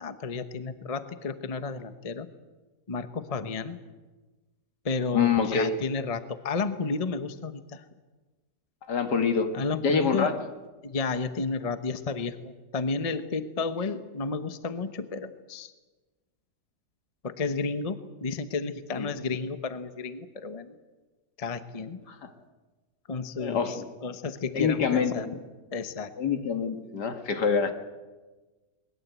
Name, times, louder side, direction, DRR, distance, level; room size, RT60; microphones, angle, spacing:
voice 1, 0.0-2.3 2.9-3.8 4.8-7.8 9.5-10.3 10.8-15.7 17.2-20.8 21.4-22.0 23.1-25.3 25.7-26.1, left 4 dB, 25° left, 10 dB, 0.9 m, -32 dB
voice 2, 5.1-5.7 8.9-9.5 9.8-10.3 19.0-19.1 22.1-22.3 23.4-23.9 24.5-25.4 26.2-27.7, left 6 dB, 70° left, 7 dB, 2.3 m, -26 dB
21.0 x 21.0 x 8.3 m, 1.2 s
omnidirectional pair, 1.9 m